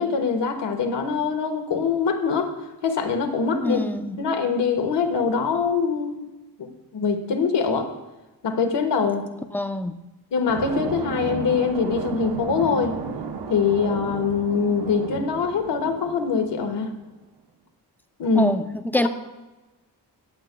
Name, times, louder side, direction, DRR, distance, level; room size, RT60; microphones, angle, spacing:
voice 1, 0.0-2.5 2.8-3.8 4.2-6.3 6.6-7.9 8.4-9.3 10.3-12.9 13.5-16.9 18.2-18.5 18.9-19.1, left 5 dB, 80° left, 1.3 m, -23 dB
voice 2, 3.6-4.2 9.5-10.0 18.3-19.1, left 1 dB, 5° left, 0.5 m, -25 dB
sound 1, 10.5-16.9, right 5 dB, 70° right, 0.9 m, -34 dB
20.0 x 8.2 x 2.2 m
wide cardioid pair, 125°, 41 cm